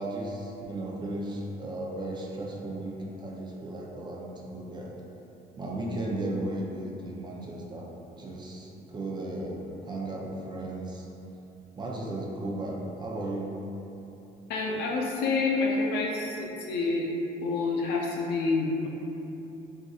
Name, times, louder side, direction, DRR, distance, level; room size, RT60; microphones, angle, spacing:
voice 1, 0.0-4.9 5.6-7.9 8.2-11.1 11.8-13.5, right 1 dB, 25° right, -3 dB, 0.4 m, -35 dB
voice 2, 14.5-17.1 17.4-18.9, left 3 dB, 85° left, -1 dB, 0.5 m, -28 dB
3.5 x 2.7 x 2.3 m, 2.9 s
cardioid pair, 110°, 17 cm